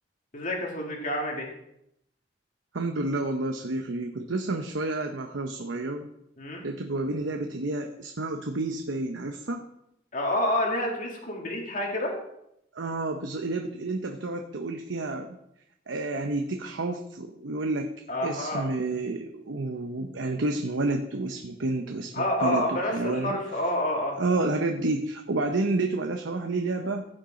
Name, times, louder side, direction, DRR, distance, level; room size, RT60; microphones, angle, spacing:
voice 1, 0.3-1.5 6.4-6.6 10.1-12.1 18.1-18.6 22.1-24.2, left 1 dB, 45° left, 0 dB, 2.4 m, -28 dB
voice 2, 2.7-6.1 6.6-9.6 12.7-15.4 15.9-17.9 18.2-23.4 24.2-27.1, right 2 dB, 85° right, 4 dB, 0.9 m, -30 dB
15.5 x 6.6 x 4.3 m, 0.79 s
head